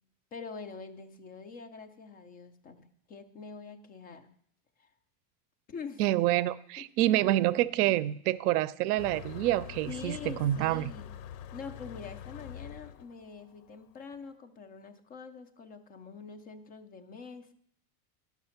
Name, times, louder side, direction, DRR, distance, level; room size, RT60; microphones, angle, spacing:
voice 1, 0.3-4.3 4.8-4.9 5.7-6.0 6.8-6.9 9.9-11.1 11.5-17.5, left 5 dB, 20° left, 7 dB, 0.4 m, -45 dB
voice 2, 6.0-10.9, right 14 dB, 80° right, 19 dB, 0.6 m, -27 dB
Motor vehicle (road), 9.0-14.1, left 9 dB, 80° left, 0.7 m, -45 dB
11.0 x 6.0 x 5.7 m, 0.66 s
supercardioid pair, 165°, 45 cm